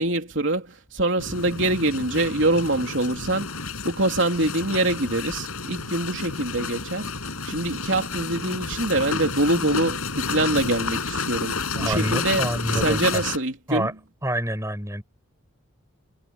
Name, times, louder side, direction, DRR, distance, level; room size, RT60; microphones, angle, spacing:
voice 1, 0.0-3.5 3.8-7.1 7.5-12.5 12.7-13.9, right 2 dB, 60° right, 3.7 m, -24 dB
sound 1, 1.2-13.4, left 4 dB, 90° left, 7.3 m, -30 dB
voice 2, 11.7-13.4 13.7-13.9 14.2-15.0, right 1 dB, 15° right, 5.3 m, -28 dB
head